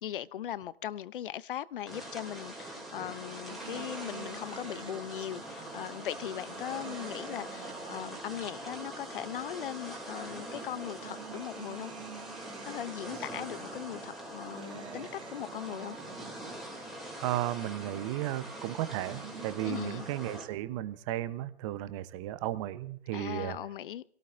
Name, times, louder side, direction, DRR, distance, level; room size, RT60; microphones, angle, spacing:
voice 1, 0.0-11.9 12.7-16.0 19.6-20.1 23.1-24.0, left 11 dB, 50° left, 0.7 m, -39 dB
sound 1, 1.9-20.5, right 1 dB, ahead, 2.9 m, -43 dB
sound 2, 3.5-8.6 9.5-9.6 10.7-16.6 18.7-19.5, right 9 dB, 75° right, 0.9 m, -50 dB
voice 2, 17.2-23.6, right 14 dB, 30° right, 1.0 m, -34 dB
28.0 x 18.0 x 2.7 m
hypercardioid pair, 135°, 34 cm